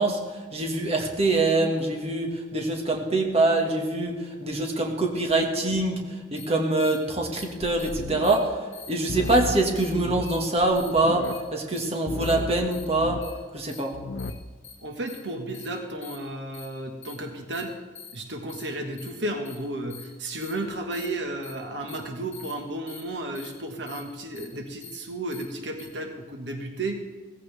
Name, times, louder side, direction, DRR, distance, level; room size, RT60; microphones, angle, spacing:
voice 1, 0.0-13.2 13.5-13.9, right 2 dB, 35° right, 1 dB, 1.8 m, -24 dB
sound 1, 6.4-6.5 6.8-7.0 7.3-7.4 7.8-7.9 8.2-8.3 8.7-8.9 9.2-9.4 9.7-9.9 10.3-10.4 10.7-10.9 11.2-11.4 11.7-11.9 12.2-12.3 12.7-12.8 13.2-13.3 13.7-13.8 14.2-14.3 14.6-14.7 15.1-15.2 15.5-15.6 16.0-16.1 16.5-16.6 17.0-17.1 17.5-17.6 17.9-18.1 18.5-18.6 19.0-19.1 19.4-19.5 19.9-20.0 20.4-20.5 20.9-21.1 21.4-21.5 21.9-22.0 22.3-22.5 22.9-23.0 23.3-23.5 23.9-24.0 24.3-24.4 24.8-24.9 25.3-25.4 25.8-25.9, left 7 dB, 35° left, 4.0 m, -44 dB
sound 2, 7.6-8.4 9.1-11.4 12.1-13.3 13.9-14.3, left 2 dB, 75° left, 0.7 m, -34 dB
voice 2, 14.8-17.7 18.1-27.0, right 1 dB, 75° right, 3 dB, 1.6 m, -33 dB
17.0 x 15.5 x 3.5 m, 1.4 s
head